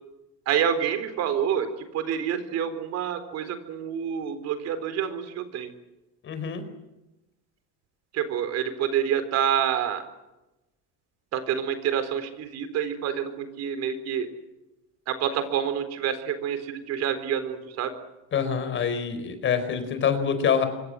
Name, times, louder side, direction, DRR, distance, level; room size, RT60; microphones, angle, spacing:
voice 1, 0.5-5.7 8.1-10.0 11.3-14.3 15.1-17.9, right 8 dB, 55° right, 9 dB, 4.2 m, -27 dB
voice 2, 6.2-6.6 18.3-20.6, left 7 dB, 40° left, 9 dB, 4.5 m, -25 dB
26.0 x 24.0 x 7.7 m, 0.97 s
cardioid pair, 160°, 31 cm